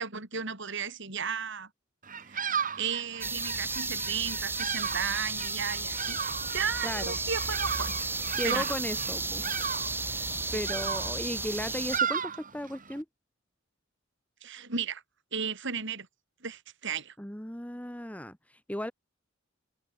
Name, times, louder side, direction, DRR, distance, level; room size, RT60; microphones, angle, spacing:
voice 1, 0.0-1.7 2.3-7.9 8.4-8.7 10.5-10.7 14.4-15.0 15.3-16.1 16.4-17.1, right 6 dB, 65° right, 6.4 m, -34 dB
Bird vocalization bird call bird song, 2.0-13.0, right 7 dB, 40° right, 6.0 m, -35 dB
sound 1, 3.2-12.0, right 3 dB, 10° right, 2.3 m, -33 dB
voice 2, 6.8-7.2 8.4-9.4 10.5-13.1 17.2-18.9, left 1 dB, 5° left, 2.2 m, -36 dB
open air
head